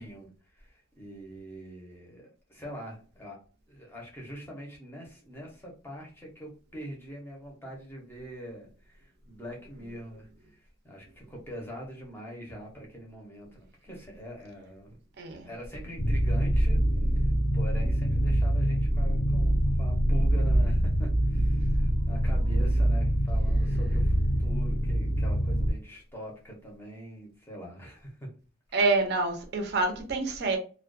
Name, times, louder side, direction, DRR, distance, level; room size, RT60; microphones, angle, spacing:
voice 1, 0.0-3.4 3.7-15.0 15.4-16.8 17.1-28.3, equal, 10° left, 0.6 m, -44 dB
voice 2, 15.2-15.5 28.7-30.6, right 3 dB, 50° right, 0.5 m, -27 dB
sound 1, 16.0-25.7, right 1 dB, 45° left, 0.7 m, -25 dB
2.2 x 2.2 x 2.5 m
head